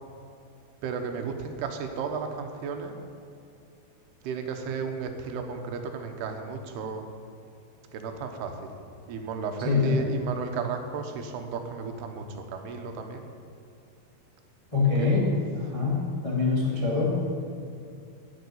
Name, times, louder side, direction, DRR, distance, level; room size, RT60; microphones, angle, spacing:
voice 1, 0.8-2.9 4.2-7.1 7.9-8.7 9.1-13.3 14.8-15.1, right 5 dB, 85° right, 5 dB, 3.1 m, -34 dB
voice 2, 9.6-10.0 14.7-15.3 15.5-17.2, left 4 dB, 20° left, -5 dB, 0.9 m, -24 dB
10.5 x 9.6 x 7.0 m, 2.6 s
omnidirectional pair, 4.5 m